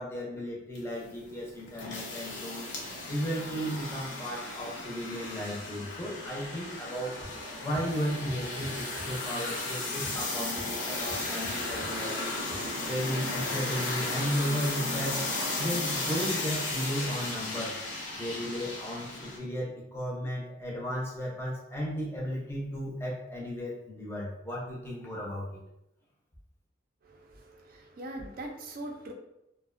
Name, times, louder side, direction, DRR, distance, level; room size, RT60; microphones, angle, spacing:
voice 1, 0.0-2.7 3.1-7.2 7.6-12.4 12.8-15.3 15.6-17.8 18.1-25.6, equal, 15° left, -4 dB, 0.5 m, -34 dB
sound 1, 0.8-19.4, left 2 dB, 85° left, 0.6 m, -35 dB
sound 2, 7.2-12.9, equal, 25° right, 0.7 m, -49 dB
voice 2, 27.0-29.1, right 1 dB, 50° right, 2 dB, 0.4 m, -42 dB
2.4 x 2.1 x 2.4 m, 0.84 s
head